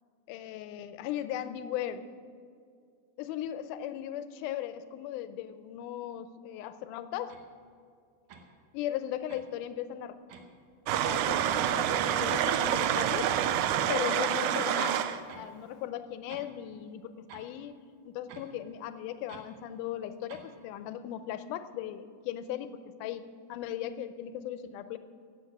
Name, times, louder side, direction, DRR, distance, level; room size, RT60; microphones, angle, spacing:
voice 1, 0.3-2.0 3.2-7.4 8.7-10.2 11.0-13.3 13.9-15.1 15.3-17.8 18.1-25.0, left 11 dB, 75° left, 12 dB, 2.0 m, -37 dB
sound 1, 7.3-7.5 8.3-8.5 9.3-9.5 10.3-10.5 11.3-11.6 11.8-12.6 12.9-13.0 13.3-13.6 14.3-14.5 15.3-15.5 16.1-16.5 17.3-17.5 18.3-18.5 19.3-19.5 20.3-20.5, right 6 dB, 65° right, 2.4 m, -48 dB
sound 2, 10.9-15.2, right 10 dB, 85° right, 1.8 m, -27 dB
15.0 x 8.6 x 7.9 m, 2.2 s
omnidirectional pair, 4.0 m